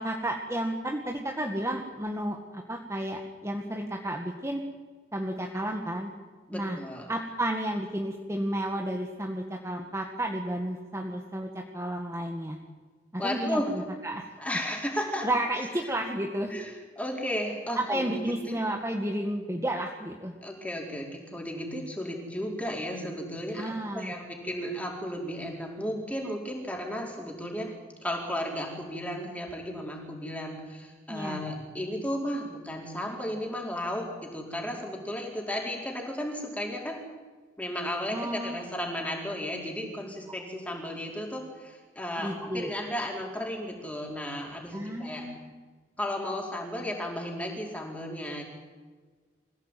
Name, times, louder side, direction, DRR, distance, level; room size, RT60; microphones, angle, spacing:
voice 1, 0.0-4.6 5.1-6.1 6.5-6.8 7.1-12.6 13.1-14.3 15.2-16.5 17.8-20.3 23.6-24.1 31.1-31.4 38.1-38.6 42.2-42.7 44.7-45.5, right 1 dB, 15° right, 1 dB, 1.8 m, -32 dB
voice 2, 6.5-7.1 13.2-13.8 14.4-15.3 15.6-15.7 16.5-18.1 18.4-18.6 20.4-27.7 28.0-37.0 37.6-45.3 46.0-48.4, equal, 5° left, 0 dB, 4.9 m, -34 dB
26.0 x 16.5 x 9.3 m, 1.4 s
head